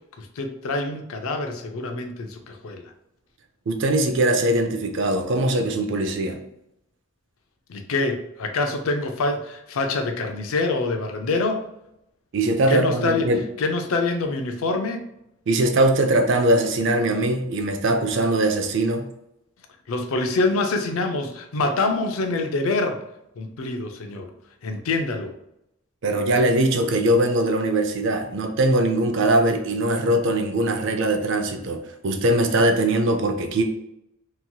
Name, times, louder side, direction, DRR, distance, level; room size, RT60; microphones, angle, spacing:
voice 1, 0.2-2.8 7.7-11.6 12.7-13.3 13.6-15.0 19.9-23.0 23.4-24.3 24.6-25.3, left 3 dB, 75° left, 5 dB, 0.4 m, -25 dB
voice 2, 3.7-6.4 12.3-13.4 15.5-19.1 26.0-33.6, right 1 dB, 55° right, 6 dB, 0.4 m, -21 dB
2.9 x 2.7 x 2.2 m, 0.82 s
head